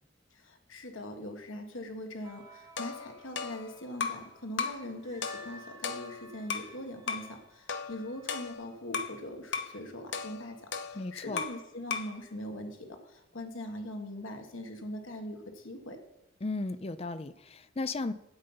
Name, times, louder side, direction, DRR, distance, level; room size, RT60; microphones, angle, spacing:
voice 1, 0.5-10.6 10.9-16.0, left 1 dB, 80° left, 5 dB, 1.6 m, -41 dB
sound 1, 2.2-8.5, right 2 dB, 20° right, 1.3 m, -55 dB
sound 2, 2.8-4.3 4.6-4.9 5.2-6.7 7.1-7.3 7.7-9.2 9.5-9.8 10.1-11.6 11.9-12.2, left 5 dB, 60° left, 0.9 m, -36 dB
voice 2, 10.9-11.4 16.4-18.1, left 3 dB, 30° left, 13 dB, 0.5 m, -35 dB
8.8 x 8.3 x 5.6 m, 0.91 s
head